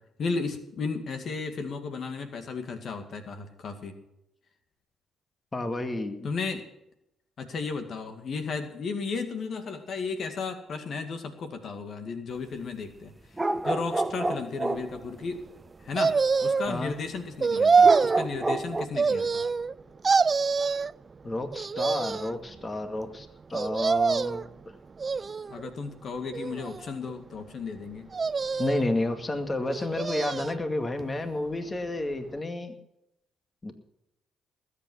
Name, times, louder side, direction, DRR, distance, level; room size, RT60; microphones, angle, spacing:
voice 1, 0.2-4.0 6.2-6.6 7.4-13.1 13.6-15.4 15.8-19.4 25.5-28.1, left 4 dB, 60° left, 6 dB, 2.1 m, -34 dB
voice 2, 5.5-6.3 16.7-16.9 21.2-24.5 28.6-32.7 33.6-33.7, left 2 dB, 25° left, 6 dB, 2.1 m, -31 dB
sound 1, 13.4-15.1 17.8-18.9, right 2 dB, 15° right, 1.0 m, -29 dB
sound 2, 16.0-16.8 17.4-18.2 19.0-19.7 20.0-20.9 21.5-22.4 23.5-24.5 25.0-25.7 26.3-27.1 28.1-28.9 29.7-30.6 31.0-31.1, right 5 dB, 35° right, 0.4 m, -25 dB
20.0 x 8.5 x 6.3 m, 0.83 s
supercardioid pair, 65°, 0 cm